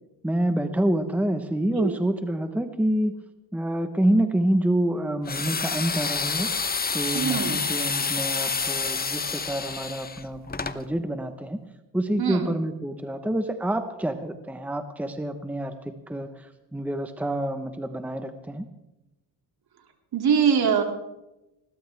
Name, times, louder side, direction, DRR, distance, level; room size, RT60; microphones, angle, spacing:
voice 1, 0.2-3.1 3.5-6.5 6.9-11.6 11.9-15.7 16.1-16.3 16.7-18.6, right 1 dB, 5° right, 8 dB, 1.1 m, -27 dB
sound 1, 5.2-10.8, left 5 dB, 20° left, 0.9 m, -28 dB
voice 2, 7.1-7.6 12.2-12.5 20.1-20.8, right 7 dB, 55° right, 4 dB, 2.8 m, -23 dB
21.0 x 17.0 x 3.5 m, 0.94 s
cardioid pair, 90°, 45 cm